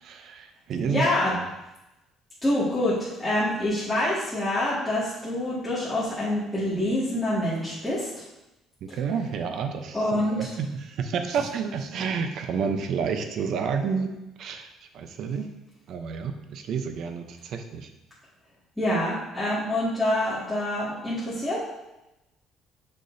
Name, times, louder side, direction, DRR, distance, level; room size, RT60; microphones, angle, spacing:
voice 1, 0.0-1.0 1.3-1.4 8.8-14.1 14.4-14.7 14.9-15.5 15.9-17.9, right 6 dB, 60° right, 7 dB, 0.7 m, -30 dB
voice 2, 0.9-1.3 2.4-8.1 9.9-10.5 18.8-21.6, left 1 dB, ahead, -11 dB, 2.0 m, -26 dB
6.6 x 6.1 x 2.7 m, 0.96 s
cardioid pair, 110°, 0 cm